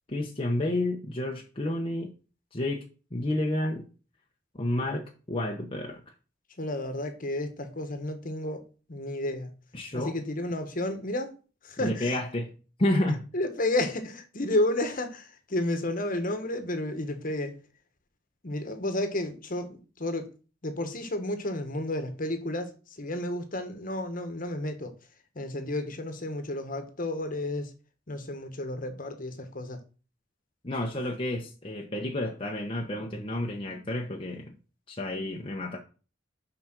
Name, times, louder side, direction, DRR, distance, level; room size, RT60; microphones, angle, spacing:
voice 1, 0.1-2.1 2.5-2.8 3.1-3.9 4.5-6.0 9.7-10.2 11.8-13.3 30.6-34.6 34.9-35.8, left 1 dB, 30° left, 0.9 m, -30 dB
voice 2, 6.6-8.6 8.9-9.5 9.9-11.3 11.6-12.2 13.3-17.5 18.4-20.3 20.6-22.7 23.0-24.9 25.3-27.7 28.1-29.8, left 1 dB, 45° left, 1.4 m, -31 dB
6.3 x 5.2 x 6.1 m
head